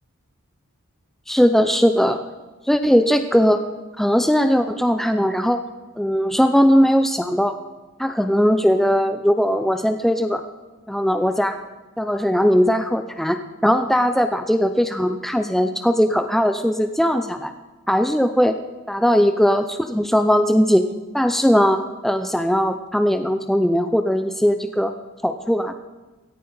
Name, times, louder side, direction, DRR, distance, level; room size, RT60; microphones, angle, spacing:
voice 1, 1.3-2.2 2.7-3.6 4.0-5.6 6.0-7.6 8.0-10.4 10.9-11.6 12.0-17.5 17.9-18.6 18.9-20.9 21.1-24.9 25.2-25.7, equal, ahead, 8 dB, 0.5 m, -19 dB
18.0 x 14.0 x 4.0 m, 1.2 s
head